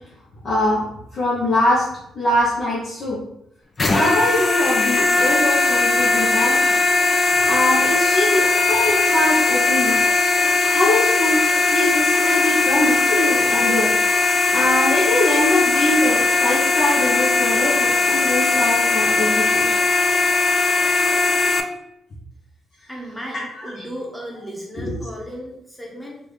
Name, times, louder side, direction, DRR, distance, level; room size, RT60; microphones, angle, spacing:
voice 1, 0.4-0.9 1.1-1.9 2.1-3.2 3.8-6.6 7.5-10.0 10.7-11.4 11.7-13.9 14.5-19.8 23.6-23.8 24.8-24.9, left 1 dB, 50° left, -7 dB, 1.0 m, -22 dB
sound 1, 3.8-21.6, left 3 dB, 35° left, 0.4 m, -18 dB
voice 2, 22.9-26.2, equal, ahead, -3 dB, 1.1 m, -35 dB
3.1 x 2.5 x 3.5 m, 0.78 s
cardioid pair, 90°, 0 cm